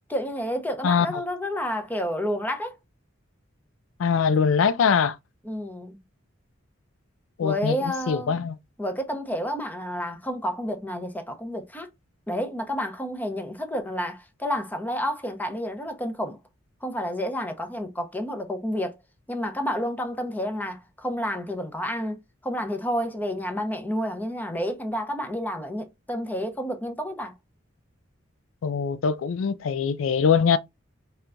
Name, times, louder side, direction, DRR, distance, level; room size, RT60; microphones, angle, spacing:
voice 1, 0.1-2.8 5.4-6.0 7.4-8.5 8.8-11.9 12.3-16.4 16.8-19.0 19.3-27.3, equal, 10° left, 0.7 m, -30 dB
voice 2, 4.0-5.2 7.4-7.7 8.1-8.5 28.6-30.6, left 6 dB, 75° left, 0.4 m, -22 dB
4.5 x 3.3 x 2.5 m
head